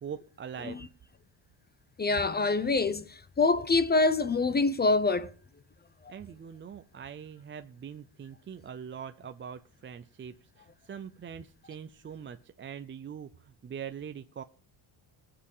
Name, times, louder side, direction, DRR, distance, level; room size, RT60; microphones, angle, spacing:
voice 1, 0.0-0.8 6.1-14.4, right 7 dB, 25° right, 0.5 m, -43 dB
voice 2, 2.0-5.3, left 3 dB, 20° left, 0.6 m, -25 dB
20.0 x 6.8 x 5.5 m
cardioid pair, 140°, 49 cm